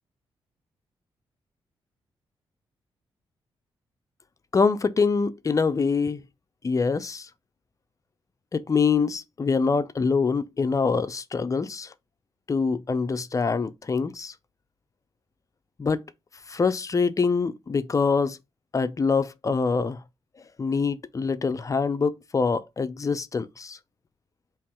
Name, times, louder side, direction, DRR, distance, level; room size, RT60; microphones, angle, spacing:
voice 1, 4.5-6.2 6.6-7.3 8.5-11.9 12.5-14.3 15.8-16.0 16.5-18.4 18.7-20.0 20.6-23.8, left 5 dB, 35° left, 0.5 m, -25 dB
3.5 x 3.0 x 4.3 m
cardioid pair, 70°, 10 cm